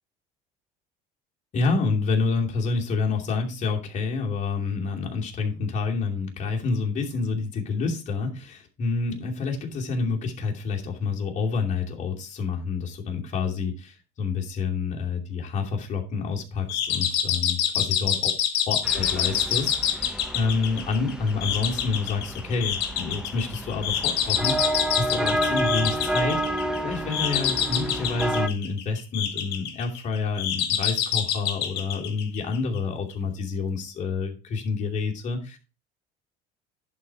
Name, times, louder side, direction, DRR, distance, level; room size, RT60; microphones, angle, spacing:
voice 1, 1.5-18.3 18.7-35.6, left 4 dB, 45° left, 0 dB, 2.6 m, -28 dB
sound 1, 16.7-32.8, left 9 dB, 75° left, 1.7 m, -27 dB
sound 2, 18.8-28.5, right 1 dB, 5° right, 0.8 m, -30 dB
11.0 x 4.1 x 4.6 m, 0.31 s
cardioid pair, 115°, 17 cm